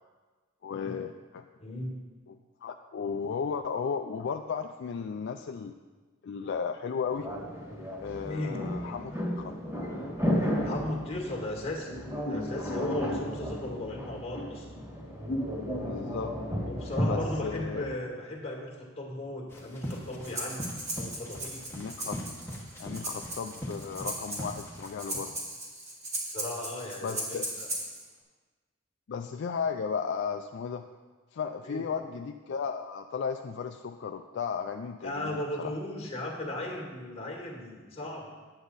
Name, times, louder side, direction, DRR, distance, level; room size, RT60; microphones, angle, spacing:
voice 1, 0.6-1.4 2.3-5.8 6.2-7.3 8.0-9.5 15.6-16.4 17.1-17.8 21.7-22.2 22.8-25.3 27.0-27.5 29.1-30.9 31.3-35.7, left 6 dB, 60° left, 5 dB, 0.4 m, -35 dB
voice 2, 1.6-2.0 8.2-8.6 10.6-11.9 12.3-14.7 16.6-20.7 21.0-21.6 26.3-27.7 31.6-31.9 35.0-38.3, left 1 dB, 30° left, -1 dB, 1.6 m, -36 dB
sound 1, 7.1-17.9, equal, 15° right, 2.0 m, -33 dB
sound 2, 19.5-25.2, equal, 10° left, 1.3 m, -41 dB
Breathing, 20.2-28.0, right 1 dB, 35° right, 2.0 m, -37 dB
9.5 x 8.0 x 4.0 m, 1.4 s
head